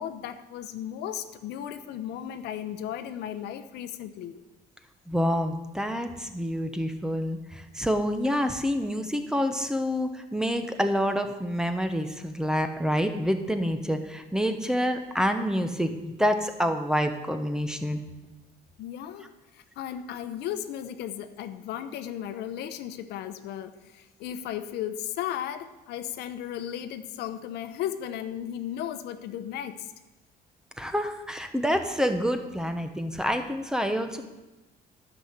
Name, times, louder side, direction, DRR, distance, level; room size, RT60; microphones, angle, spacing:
voice 1, 0.0-4.4 18.8-29.9, left 10 dB, 80° left, 11 dB, 0.8 m, -35 dB
voice 2, 5.1-18.0 30.8-34.2, equal, 5° right, 7 dB, 1.1 m, -27 dB
11.0 x 5.9 x 8.0 m, 1.1 s
cardioid pair, 110°, 17 cm